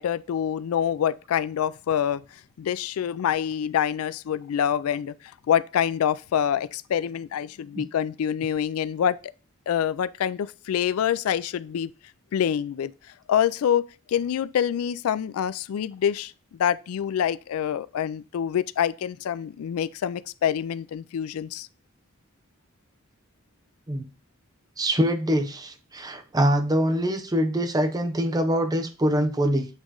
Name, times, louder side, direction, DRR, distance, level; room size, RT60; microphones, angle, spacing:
voice 1, 0.0-2.2 2.6-5.2 5.5-9.2 9.7-11.9 12.3-12.9 13.3-21.7, left 9 dB, 90° left, 0.3 m, -26 dB
voice 2, 24.8-29.7, equal, 20° right, 0.6 m, -24 dB
8.2 x 3.1 x 3.7 m
head